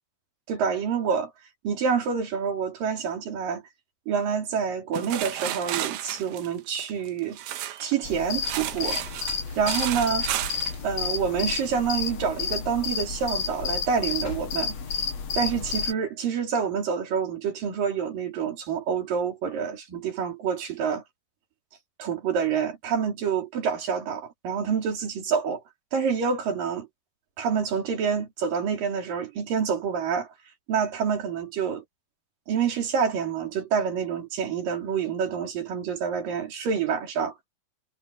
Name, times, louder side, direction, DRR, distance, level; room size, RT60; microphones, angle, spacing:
voice 1, 0.5-1.3 1.6-3.6 4.1-7.4 7.8-9.0 9.6-10.3 10.8-14.8 15.4-21.0 22.0-25.6 25.9-26.9 27.4-30.3 30.7-31.8 32.5-37.3, right 6 dB, 55° right, 4.7 m, -27 dB
sound 1, 4.9-7.9 8.4-10.8, right 13 dB, 90° right, 3.5 m, -32 dB
sound 2, 8.0-15.9, left 6 dB, 50° left, 2.1 m, -31 dB
sound 3, 9.2-9.8 10.9-11.3 11.7-11.8 13.4-14.6 15.2-15.3, left 4 dB, 75° left, 7.5 m, -49 dB
omnidirectional pair, 5.0 m